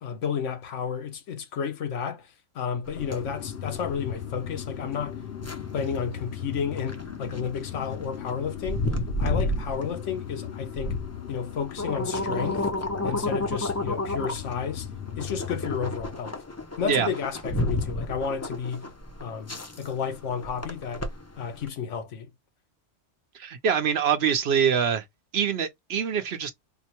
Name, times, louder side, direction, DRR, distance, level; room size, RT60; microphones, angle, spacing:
voice 1, 0.0-5.2 5.7-8.8 9.2-11.0 11.3-12.7 13.0-14.9 15.2-16.4 16.8-18.9 19.2-21.1 21.4-22.3, left 6 dB, 85° left, 1.1 m, -32 dB
sound 1, 2.9-21.7, left 1 dB, 25° left, 0.4 m, -32 dB
drone sound cockpit, 3.0-16.1, left 9 dB, 65° left, 0.7 m, -38 dB
voice 2, 23.3-25.0 25.3-26.5, right 7 dB, 65° right, 0.9 m, -24 dB
4.3 x 2.1 x 2.9 m
omnidirectional pair, 1.2 m